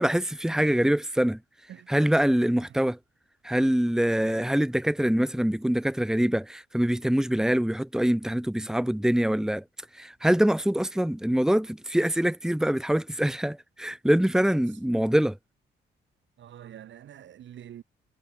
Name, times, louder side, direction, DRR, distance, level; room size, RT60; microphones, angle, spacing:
voice 1, 0.0-1.4 1.9-3.0 3.4-9.6 9.9-15.4, equal, 5° right, 2.4 m, -24 dB
voice 2, 0.6-0.9 1.7-1.9 2.6-2.8 14.6-14.7 16.4-17.8, right 10 dB, 70° right, 5.3 m, -46 dB
cardioid pair, 90°, 20 cm